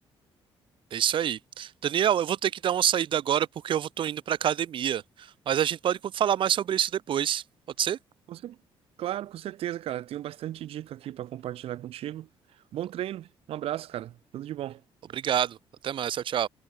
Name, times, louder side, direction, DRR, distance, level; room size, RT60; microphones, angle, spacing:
voice 1, 0.9-7.4 7.8-8.0 15.1-15.6 15.8-16.5, right 10 dB, 55° right, 2.4 m, -27 dB
voice 2, 9.0-12.3 12.7-14.8, right 12 dB, 75° right, 3.1 m, -35 dB
cardioid pair, 140°, 10 cm